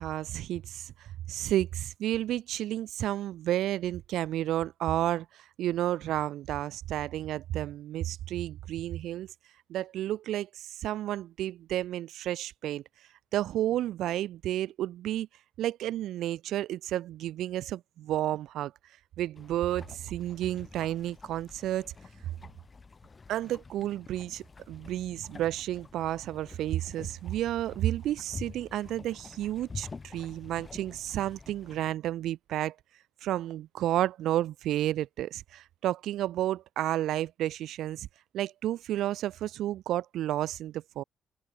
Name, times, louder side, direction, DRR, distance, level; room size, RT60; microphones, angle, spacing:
voice 1, 0.0-9.3 9.7-12.8 13.3-15.3 15.6-18.7 19.2-21.9 23.3-32.8 33.2-38.1 38.3-41.0, right 13 dB, 80° right, 4.3 m, -31 dB
sound 1, 19.4-31.9, left 4 dB, 30° left, 5.2 m, -48 dB
cardioid pair, 90°, 0 cm